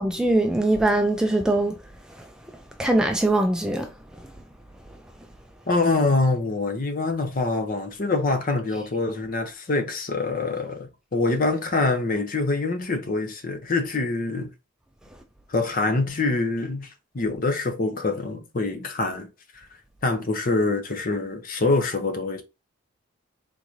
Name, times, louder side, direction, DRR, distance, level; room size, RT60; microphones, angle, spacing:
voice 1, 0.0-1.8 2.8-3.9 8.7-8.8, right 1 dB, 5° right, 0.3 m, -22 dB
voice 2, 5.7-14.5 15.5-16.9 17.1-19.3 19.5-19.6 20.0-22.4, left 3 dB, 40° left, 0.6 m, -25 dB
3.7 x 2.6 x 3.0 m
head